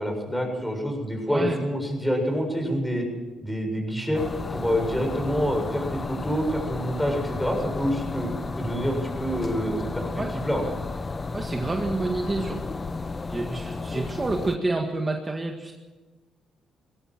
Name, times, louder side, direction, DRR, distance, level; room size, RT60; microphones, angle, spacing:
voice 1, 0.0-3.0 3.4-4.2 4.5-8.3 8.6-10.7, equal, 5° left, 3 dB, 7.4 m, -27 dB
voice 2, 1.3-1.6 10.1-10.3 11.3-12.6 13.3-15.7, right 2 dB, 25° right, 3 dB, 2.0 m, -28 dB
sound 1, 4.1-14.6, left 3 dB, 30° left, 1.2 m, -33 dB
21.5 x 16.5 x 7.7 m, 1.3 s
cardioid pair, 90°, 0 cm